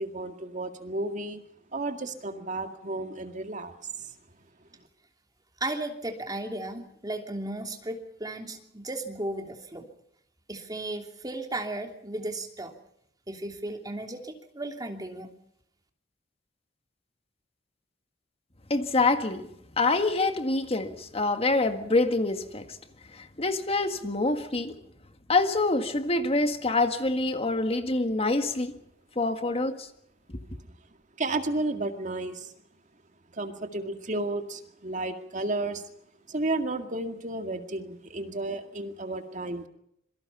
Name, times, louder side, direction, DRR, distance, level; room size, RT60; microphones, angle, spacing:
voice 1, 0.0-1.4 1.7-3.7 4.0-4.1 31.2-32.5 33.3-35.9 36.3-39.7, right 2 dB, 40° right, 2.1 m, -32 dB
voice 2, 5.6-9.9 10.5-12.7 13.3-15.3, right 2 dB, 20° right, 2.9 m, -35 dB
voice 3, 18.7-19.4 19.8-22.7 23.1-24.7 25.3-28.7 29.2-29.9, left 2 dB, 30° left, 1.8 m, -26 dB
26.5 x 23.5 x 5.7 m
head